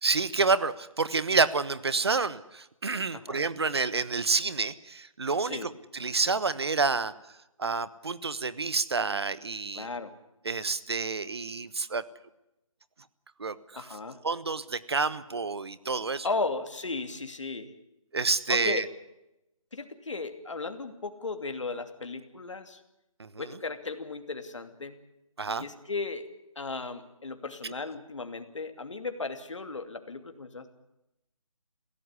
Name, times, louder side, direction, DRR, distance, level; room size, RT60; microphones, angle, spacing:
voice 1, 0.0-7.1 7.6-9.9 10.4-12.0 13.4-13.9 14.2-16.3 18.1-18.8 23.2-23.6 25.4-25.6, right 4 dB, 50° right, 16 dB, 1.2 m, -29 dB
voice 2, 9.7-10.1 13.7-14.2 16.2-17.7 18.5-18.9 19.7-22.8 23.4-24.9 25.6-26.2 26.6-30.7, left 3 dB, 60° left, 8 dB, 2.7 m, -35 dB
22.0 x 16.5 x 9.9 m, 0.91 s
hypercardioid pair, 180°, 18 cm